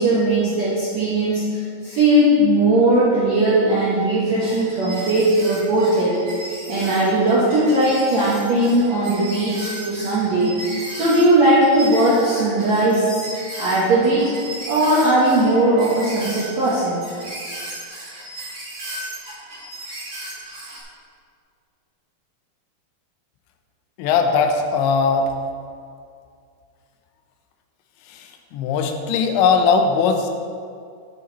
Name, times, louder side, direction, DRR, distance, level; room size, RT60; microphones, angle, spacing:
voice 1, 0.0-13.3 13.6-14.3 14.6-17.0, right 1 dB, 65° right, -8 dB, 1.7 m, -18 dB
sound 1, 4.4-20.8, right 1 dB, 40° right, 1.8 m, -35 dB
voice 2, 24.0-25.3 28.5-30.3, left 5 dB, 85° left, 5 dB, 3.1 m, -19 dB
9.5 x 8.2 x 4.1 m, 2.3 s
omnidirectional pair, 5.2 m